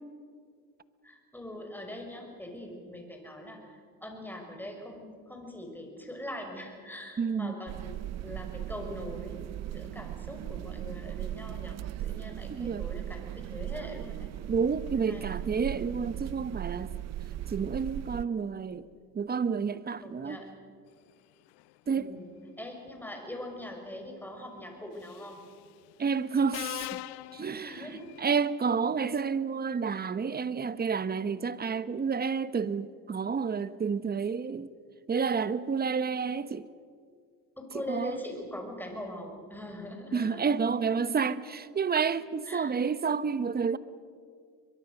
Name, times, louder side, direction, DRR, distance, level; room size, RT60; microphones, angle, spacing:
voice 1, 1.0-7.9 8.2-14.3 15.1-15.4 20.0-20.6 21.9-25.4 27.6-28.1 37.6-40.4 42.5-42.7, left 1 dB, 5° left, 5.7 m, -42 dB
voice 2, 7.2-7.6 12.5-12.9 14.5-16.9 17.5-18.8 19.1-20.4 21.9-22.1 26.0-27.0 27.3-27.9 28.2-34.7 35.1-36.7 37.9-38.2 40.1-43.8, right 5 dB, 20° right, 1.0 m, -30 dB
airplane ambience, 7.7-18.3, right 13 dB, 40° right, 0.5 m, -38 dB
Subway metro underground, 25.0-25.4 26.5-28.2, left 19 dB, 70° left, 0.7 m, -40 dB
22.5 x 22.5 x 6.5 m
supercardioid pair, 90°, 42 cm